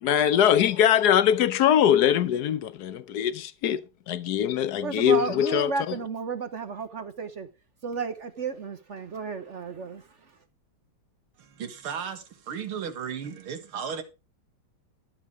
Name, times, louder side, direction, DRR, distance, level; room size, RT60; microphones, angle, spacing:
voice 1, 0.0-6.0, left 10 dB, 65° left, 1.1 m, -22 dB
voice 2, 4.8-7.5 7.8-10.0, right 5 dB, 50° right, 0.9 m, -32 dB
voice 3, 11.4-14.0, right 7 dB, 75° right, 2.5 m, -35 dB
13.5 x 7.6 x 4.9 m
omnidirectional pair, 2.3 m